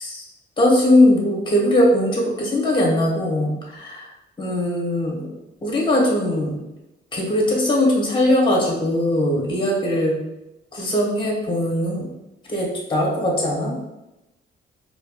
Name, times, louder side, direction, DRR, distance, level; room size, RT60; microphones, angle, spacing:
voice 1, 0.6-4.0 4.4-5.2 5.6-6.5 7.1-10.1 10.7-12.0 12.5-13.7, left 1 dB, 25° left, -2 dB, 1.4 m, -20 dB
4.0 x 2.9 x 2.5 m, 0.95 s
cardioid pair, 90°, 20 cm